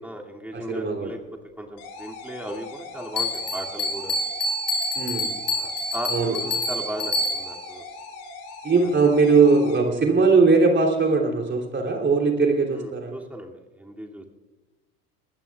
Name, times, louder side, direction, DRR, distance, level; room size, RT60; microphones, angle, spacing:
voice 1, 0.0-1.2 1.6-4.2 5.6-7.8 8.9-9.0 12.7-14.2, right 1 dB, 5° right, 0 dB, 2.5 m, -36 dB
voice 2, 0.5-1.1 5.0-5.3 6.1-6.3 8.6-13.1, right 4 dB, 25° right, 2 dB, 3.1 m, -20 dB
sound 1, 1.8-9.8, left 3 dB, 55° left, 4.1 m, -41 dB
Bell, 3.2-7.7, left 1 dB, 35° left, 5.2 m, -27 dB
25.5 x 19.5 x 2.4 m, 1.2 s
figure-of-eight pair, 65°, 43 cm